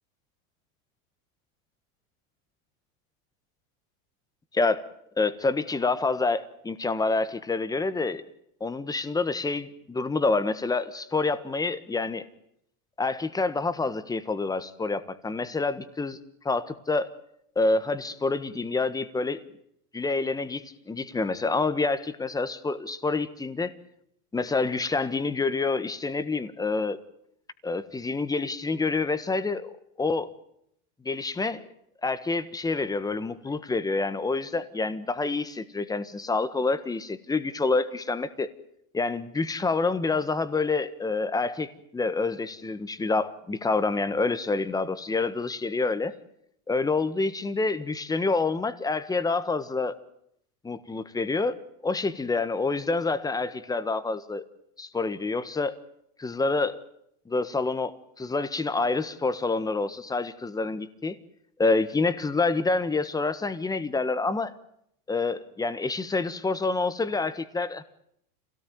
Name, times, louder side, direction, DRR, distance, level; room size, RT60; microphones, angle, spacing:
voice 1, 5.2-8.2 8.6-12.2 13.0-16.2 16.4-17.1 17.5-19.4 19.9-23.7 24.3-27.0 27.6-30.3 31.0-31.6 32.0-38.5 38.9-46.1 46.7-50.0 50.6-54.4 54.8-55.7 56.2-56.8 57.3-61.2 61.6-64.5 65.1-67.8, left 3 dB, 10° left, 14 dB, 1.4 m, -27 dB
27.5 x 17.5 x 9.4 m, 0.74 s
supercardioid pair, 145°, 43 cm